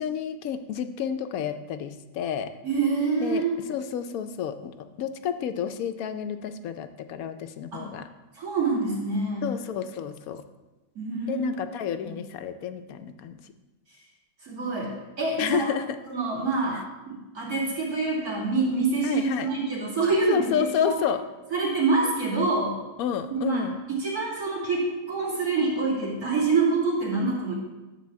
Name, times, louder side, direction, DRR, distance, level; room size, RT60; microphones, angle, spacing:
voice 1, 0.0-2.5 3.2-8.1 9.4-10.4 11.3-13.4 15.4-15.9 19.0-19.5 20.3-21.2 23.0-23.8, left 8 dB, 70° left, 9 dB, 0.9 m, -30 dB
voice 2, 2.6-3.5 7.7-7.9 8.3-9.5 10.9-11.5 12.0-12.2 14.4-15.7 16.1-16.8 17.1-21.0 21.5-22.8 23.3-27.5, right 3 dB, 60° right, -6 dB, 3.1 m, -26 dB
11.0 x 4.0 x 7.5 m, 1.1 s
omnidirectional pair, 1.9 m